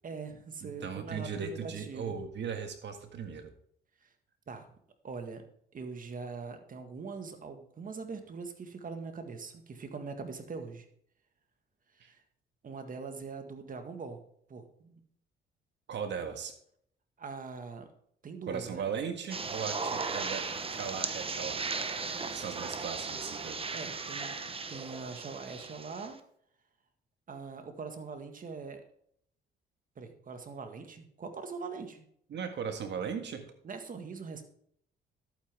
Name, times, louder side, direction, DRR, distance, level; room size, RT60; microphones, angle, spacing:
voice 1, 0.0-2.2 4.0-4.1 4.5-4.7 5.0-5.4 5.7-10.9 12.0-12.2 12.6-14.2 14.5-15.0 17.2-17.9 18.2-18.8 23.7-24.4 24.7-26.2 27.3-28.8 30.0-32.1 33.6-34.4, right 4 dB, 45° right, 7 dB, 1.7 m, -42 dB
voice 2, 0.6-3.5 12.0-12.1 15.9-16.5 18.5-21.7 22.3-23.6 32.3-33.5, right 6 dB, 65° right, 7 dB, 1.8 m, -38 dB
sound 1, 19.3-26.1, right 4 dB, 30° right, 1.0 m, -36 dB
11.5 x 9.1 x 3.6 m, 0.66 s
cardioid pair, 90°, 20 cm